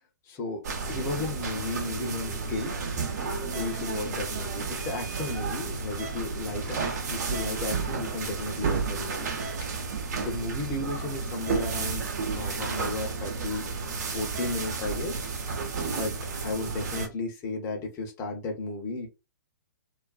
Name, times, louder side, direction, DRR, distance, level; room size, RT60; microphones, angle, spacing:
voice 1, 0.2-0.6 0.9-2.8 3.5-9.3 9.6-9.7 10.2-12.0 12.3-13.7 14.1-15.2 16.0-16.1 16.4-19.1, left 3 dB, 25° left, 2 dB, 0.7 m, -34 dB
sound 1, 0.6-17.1, right 4 dB, 55° right, 0.8 m, -32 dB
2.4 x 2.3 x 2.3 m, 0.27 s
figure-of-eight pair, 125°, 11 cm